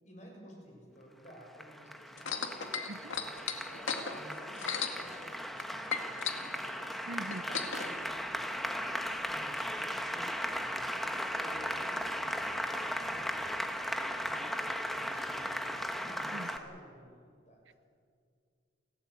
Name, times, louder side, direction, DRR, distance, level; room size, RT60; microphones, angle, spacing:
voice 1, 0.0-7.0 7.2-13.7 14.1-17.7, equal, 35° left, 0 dB, 6.5 m, -54 dB
Applause, 1.3-16.6, equal, ahead, 1.1 m, -37 dB
sound 1, 2.2-5.6 5.9-7.9 8.7-8.8, left 6 dB, 85° left, 2.1 m, -36 dB
voice 2, 7.1-7.4 16.3-16.5 17.7-17.8, right 2 dB, 70° right, 15 dB, 0.7 m, -42 dB
30.0 x 13.5 x 8.5 m, 2.3 s
head